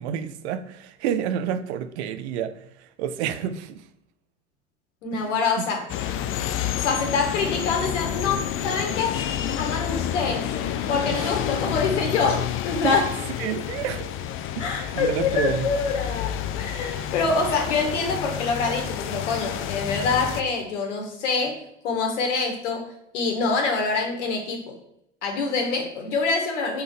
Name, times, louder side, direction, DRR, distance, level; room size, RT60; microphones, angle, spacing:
voice 1, 0.0-2.5 3.0-3.8 5.1-5.6 11.1-11.4 12.8-13.0 13.4-14.1 14.6-15.7, right 9 dB, 60° right, 10 dB, 0.7 m, -29 dB
voice 2, 5.0-5.8 6.3-9.2 9.6-10.5 10.9-13.1 14.6-24.7 25.2-26.8, left 4 dB, 70° left, 2 dB, 1.7 m, -26 dB
sound 1, 5.9-20.4, left 10 dB, 35° left, 0.5 m, -29 dB
5.7 x 3.9 x 4.8 m, 0.77 s
hypercardioid pair, 80°, 37 cm